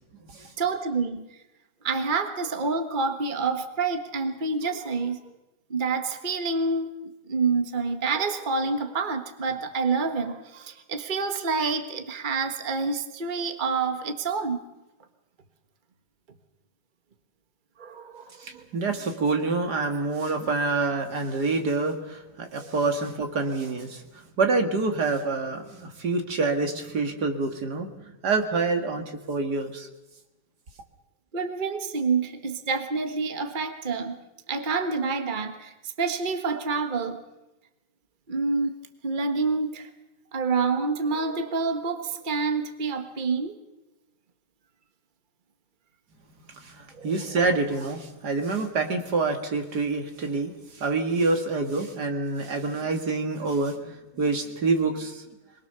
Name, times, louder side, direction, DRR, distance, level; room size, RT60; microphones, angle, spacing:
voice 1, 0.6-1.3 1.8-5.2 5.7-14.6 17.8-18.6 22.6-22.7 31.3-34.2 34.5-37.2 38.3-38.7 39.0-39.9 40.3-43.6 47.0-47.1, right 4 dB, 30° right, 7 dB, 1.6 m, -28 dB
voice 2, 18.4-24.0 24.4-27.9 28.2-29.9 46.6-55.2, right 3 dB, 70° right, 5 dB, 2.6 m, -27 dB
23.5 x 21.5 x 6.8 m, 1.0 s
omnidirectional pair, 1.8 m